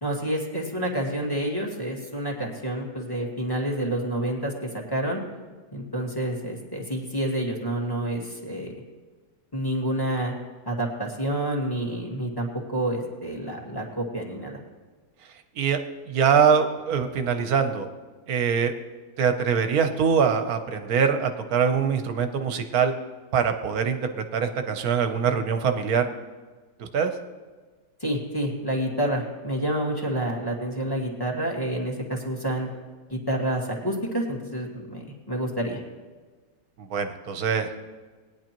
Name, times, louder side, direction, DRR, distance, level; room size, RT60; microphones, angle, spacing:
voice 1, 0.0-5.2 5.7-8.7 9.5-10.3 10.7-14.6 28.0-32.7 33.1-35.8, right 1 dB, 15° left, -2 dB, 1.9 m, -28 dB
voice 2, 16.1-17.9 18.3-18.7 19.2-22.9 23.3-24.0 24.3-26.0 26.8-27.1 36.8-37.8, right 6 dB, 60° right, 7 dB, 1.3 m, -23 dB
20.5 x 10.0 x 3.0 m, 1.4 s
omnidirectional pair, 1.9 m